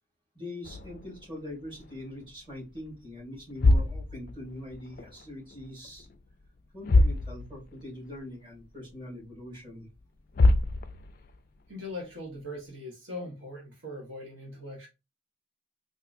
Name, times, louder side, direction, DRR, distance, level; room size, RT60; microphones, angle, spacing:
voice 1, 0.3-6.1 6.7-9.9, left 1 dB, 25° right, 2.1 m, -42 dB
sound 1, 0.6-2.3 2.6-2.9 3.4-5.2 5.5-6.2 6.5-6.6 6.8-7.8 8.2-8.3 8.9-9.0 10.0-10.1 10.3-11.4, left 2 dB, 45° left, 0.3 m, -26 dB
voice 2, 11.7-14.9, left 1 dB, 80° right, 1.2 m, -40 dB
3.6 x 2.7 x 2.5 m
head